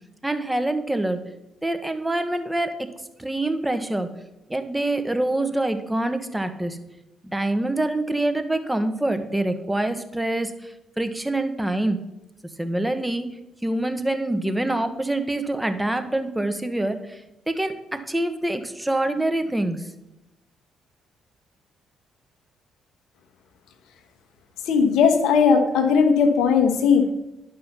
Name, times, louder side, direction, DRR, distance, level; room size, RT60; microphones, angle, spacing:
voice 1, 0.2-1.2 1.6-2.7 3.2-4.1 4.5-6.8 7.2-12.0 12.6-13.3 13.6-17.2 17.5-19.8, right 1 dB, 10° right, 8 dB, 1.3 m, -25 dB
voice 2, 24.7-27.1, left 6 dB, 70° left, 6 dB, 1.2 m, -18 dB
10.5 x 5.6 x 5.8 m, 0.91 s
hypercardioid pair, 45°, 0 cm